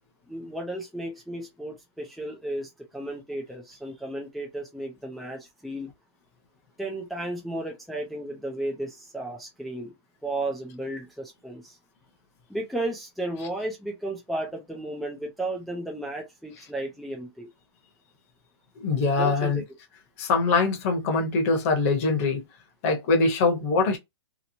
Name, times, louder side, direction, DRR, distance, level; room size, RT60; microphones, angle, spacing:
voice 1, 0.3-5.9 6.8-9.9 10.2-11.8 12.5-17.5 19.2-19.6, right 1 dB, ahead, 0.4 m, -34 dB
voice 2, 18.8-19.6 20.2-22.4 22.8-24.0, left 4 dB, 35° left, 0.9 m, -23 dB
2.9 x 2.0 x 2.7 m
hypercardioid pair, 155°, 14 cm